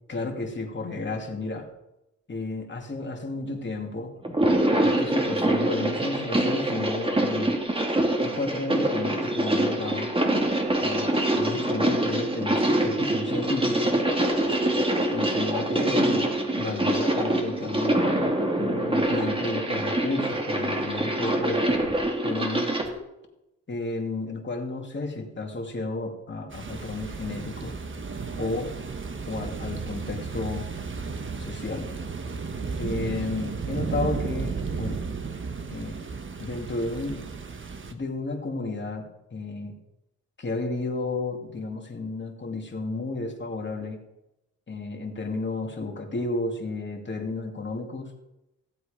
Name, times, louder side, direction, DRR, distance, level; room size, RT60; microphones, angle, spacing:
voice 1, 0.1-1.7 2.3-4.1 4.8-7.6 8.2-10.1 10.8-14.0 15.1-18.0 18.6-21.9 22.2-22.7 23.7-27.7 28.4-28.7 29.3-30.7 31.4-31.9 32.8-35.0 35.7-36.0 36.4-37.3 37.9-39.7 40.4-44.0 44.7-48.1, left 3 dB, 35° left, 1 dB, 2.6 m, -32 dB
sound 1, 4.2-22.9, right 1 dB, 15° right, 2.5 m, -25 dB
sound 2, 26.5-37.9, right 5 dB, 40° right, 1.3 m, -34 dB
15.5 x 8.0 x 5.1 m, 0.91 s
cardioid pair, 75°, 32 cm